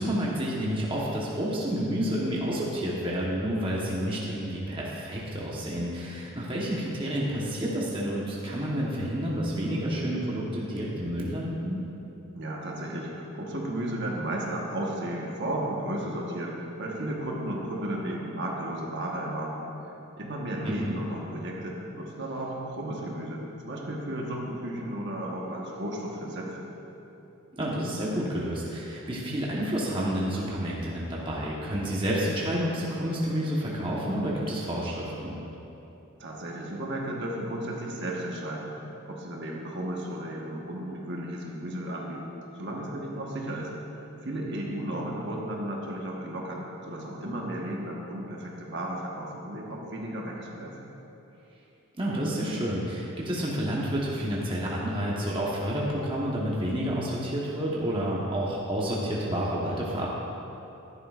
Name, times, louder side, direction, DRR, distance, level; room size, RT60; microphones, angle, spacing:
voice 1, 0.0-11.8 20.6-21.0 27.5-35.4 52.0-60.1, equal, 25° right, -5 dB, 1.2 m, -29 dB
voice 2, 12.3-19.7 20.2-26.7 36.2-38.7 39.0-43.7 44.2-50.9, right 1 dB, 50° right, -2 dB, 1.3 m, -34 dB
14.0 x 11.5 x 2.5 m, 3.0 s
head